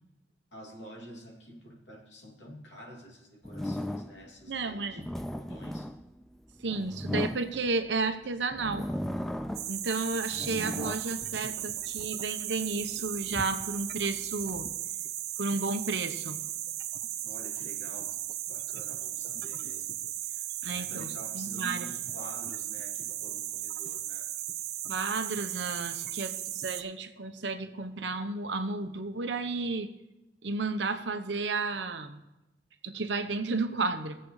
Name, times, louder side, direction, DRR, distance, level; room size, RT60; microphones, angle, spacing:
voice 1, 0.5-5.9 17.2-18.1 18.5-24.3, equal, 80° left, -1 dB, 2.8 m, -49 dB
sound 1, 3.4-4.3 4.8-8.0 8.5-9.8 10.2-12.1 12.7-14.8, left 1 dB, ahead, 0.3 m, -37 dB
voice 2, 4.5-5.1 6.6-8.9 9.7-14.7 15.4-16.4 20.6-21.9 24.9-29.9 30.4-32.2 32.8-34.2, right 3 dB, 75° right, 8 dB, 1.0 m, -32 dB
sound 2, 9.5-26.8, right 12 dB, 60° right, 0.6 m, -36 dB
20.5 x 7.7 x 3.2 m, 0.96 s
head